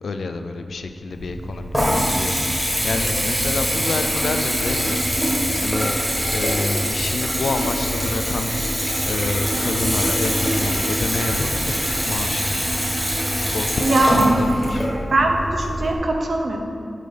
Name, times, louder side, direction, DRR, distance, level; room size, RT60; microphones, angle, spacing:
voice 1, 0.0-6.0 6.3-12.8 13.3-14.9, left 3 dB, 75° left, 7 dB, 0.4 m, -29 dB
Water tap faucet / Bathtub (filling or washing) / Trickle dribble, 1.1-16.0, equal, ahead, 1.5 m, -23 dB
voice 2, 13.8-14.2 15.1-16.6, right 2 dB, 50° right, 2 dB, 0.7 m, -20 dB
6.5 x 5.3 x 3.8 m, 2.4 s
wide cardioid pair, 130°, 0 cm